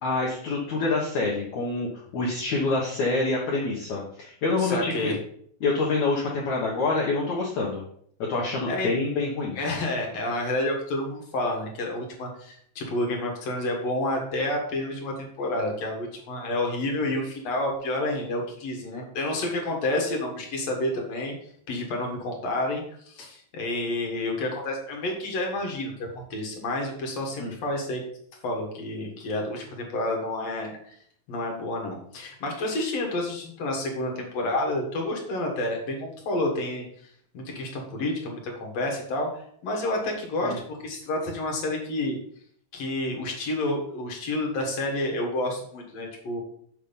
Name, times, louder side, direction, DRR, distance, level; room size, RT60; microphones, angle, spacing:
voice 1, 0.0-1.9 2.1-5.1 5.6-7.8 8.3-9.6 27.4-27.5 40.4-40.5, left 3 dB, 75° left, -4 dB, 1.7 m, -26 dB
voice 2, 4.6-5.2 8.7-8.9 9.5-21.3 21.7-25.9 26.3-28.0 28.4-30.9 31.3-36.9 37.3-42.2 42.7-46.4, left 1 dB, 55° left, 1 dB, 2.0 m, -29 dB
6.6 x 6.5 x 5.3 m, 0.64 s
omnidirectional pair, 5.3 m